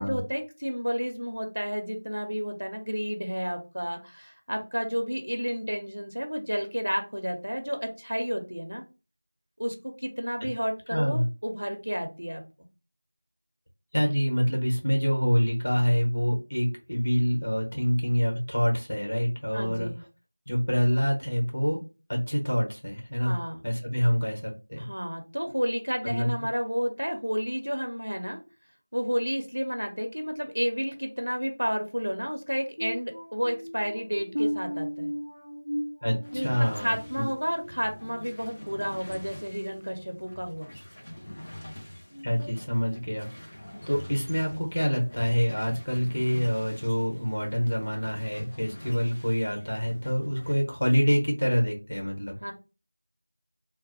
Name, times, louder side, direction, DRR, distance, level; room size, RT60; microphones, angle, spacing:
voice 1, 0.0-8.8 9.6-12.4 19.5-20.0 23.2-23.6 24.8-28.4 28.9-35.1 36.3-36.5 36.7-40.7 52.4-52.5, equal, 75° right, 4 dB, 0.6 m, -31 dB
voice 2, 10.9-11.3 13.9-19.9 20.5-21.8 22.1-23.4 23.6-24.9 26.0-26.3 36.0-37.3 42.2-43.6 43.9-52.4, equal, 60° left, 0 dB, 1.1 m, -26 dB
sound 1, 32.8-38.4 38.9-39.1 39.7-39.8, equal, 85° left, 0.6 m, -36 dB
sound 2, 36.2-50.5, left 1 dB, 20° left, 0.6 m, -45 dB
3.0 x 2.1 x 2.8 m, 0.31 s
figure-of-eight pair, 175°, 0 cm